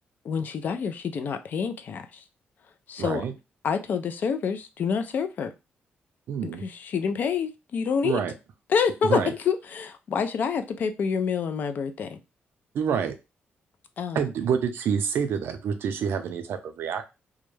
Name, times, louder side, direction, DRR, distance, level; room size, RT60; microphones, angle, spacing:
voice 1, 0.2-2.2 2.9-3.2 3.6-5.5 6.4-8.2 8.7-12.2 14.0-14.3, left 6 dB, 50° left, 0.3 m, -27 dB
voice 2, 3.0-3.3 6.3-6.6 8.0-8.3 9.0-9.3 12.7-13.1 14.1-17.0, right 7 dB, 70° right, 0.5 m, -27 dB
2.3 x 2.1 x 3.1 m
wide cardioid pair, 175°, 4 cm